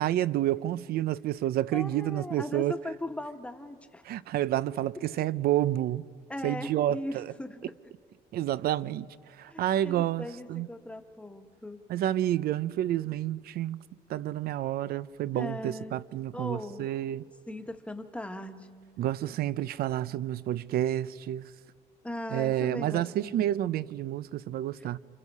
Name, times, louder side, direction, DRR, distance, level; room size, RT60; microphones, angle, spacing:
voice 1, 0.0-2.8 4.0-6.0 6.4-7.3 8.3-10.7 11.9-13.8 14.1-17.2 19.0-21.5 22.3-25.0, right 13 dB, 65° right, 0.6 m, -29 dB
voice 2, 1.7-4.0 6.3-7.6 9.5-11.8 15.3-16.0 16.3-16.9 17.5-18.7 22.0-23.5, left 1 dB, 5° left, 1.3 m, -39 dB
29.5 x 27.5 x 5.5 m
cardioid pair, 110°, 17 cm